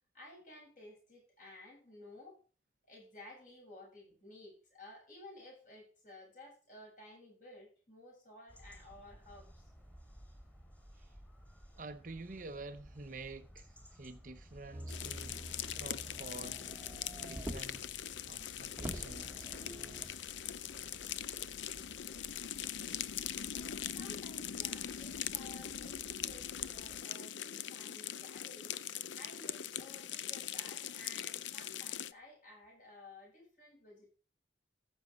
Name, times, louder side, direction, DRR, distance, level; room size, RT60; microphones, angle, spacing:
voice 1, 0.1-2.4 2.9-9.7 23.5-34.1, left 2 dB, 45° left, 7.7 m, -55 dB
sound 1, 8.5-27.0, equal, 10° left, 2.7 m, -57 dB
voice 2, 11.7-16.6 17.2-17.8 18.3-19.5, right 3 dB, 45° right, 0.7 m, -49 dB
Motor vehicle (road), 14.7-17.9 18.4-18.5 18.7-20.2 21.0-21.1, equal, 10° right, 1.2 m, -46 dB
sound 2, 14.9-32.1, left 10 dB, 80° left, 0.6 m, -41 dB
14.5 x 6.3 x 5.2 m
head